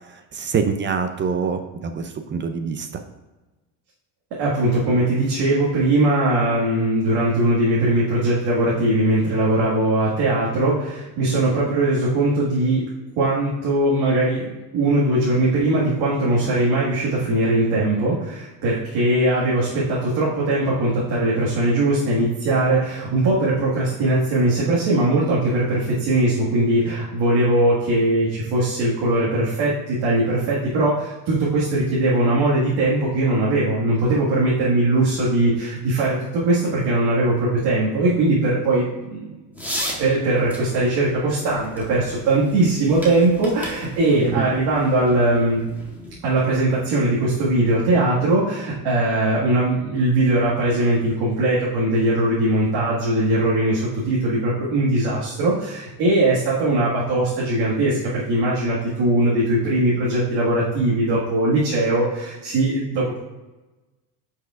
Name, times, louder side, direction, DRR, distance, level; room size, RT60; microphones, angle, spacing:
voice 1, 0.1-3.0 44.1-44.5, right 6 dB, 25° right, 7 dB, 0.4 m, -25 dB
voice 2, 4.3-12.8 13.2-39.4 40.0-45.6 46.2-63.2, right 2 dB, 60° right, -7 dB, 1.9 m, -20 dB
sound 1, 39.5-46.2, equal, 5° right, 1.6 m, -36 dB
8.9 x 5.6 x 2.4 m, 1.1 s
cardioid pair, 135°, 44 cm